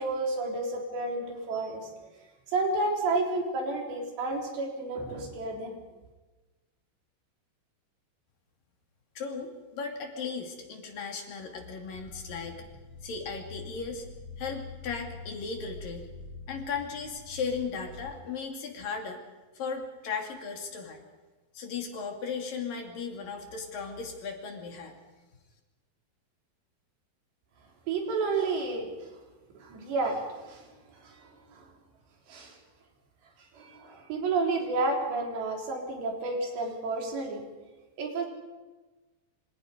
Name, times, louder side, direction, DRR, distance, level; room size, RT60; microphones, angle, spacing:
voice 1, 0.0-2.1 2.5-5.8 27.9-28.9 29.6-31.7 32.3-32.6 33.5-37.4 38.0-38.3, right 3 dB, 90° right, 1 dB, 6.0 m, -31 dB
voice 2, 9.2-12.6 13.0-14.1 14.4-16.1 16.5-19.2 19.5-21.0 21.5-24.9, left 5 dB, 55° left, 3 dB, 4.2 m, -36 dB
sound 1, 11.9-18.1, left 3 dB, 35° left, 4.0 m, -45 dB
27.0 x 26.0 x 5.3 m, 1.2 s
omnidirectional pair, 4.8 m